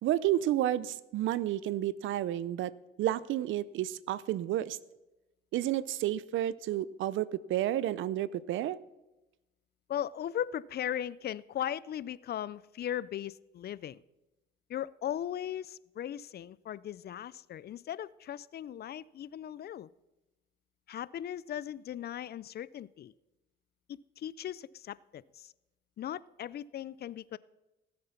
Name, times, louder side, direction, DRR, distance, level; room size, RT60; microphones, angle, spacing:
voice 1, 0.0-2.7 3.0-4.8 5.5-8.8, right 13 dB, 80° right, 19 dB, 0.6 m, -31 dB
voice 2, 9.9-14.0 14.7-19.9 20.9-23.1 23.9-25.5 26.0-27.4, left 10 dB, 55° left, 20 dB, 0.5 m, -38 dB
17.0 x 7.7 x 5.8 m, 0.99 s
cardioid pair, 90°, 20 cm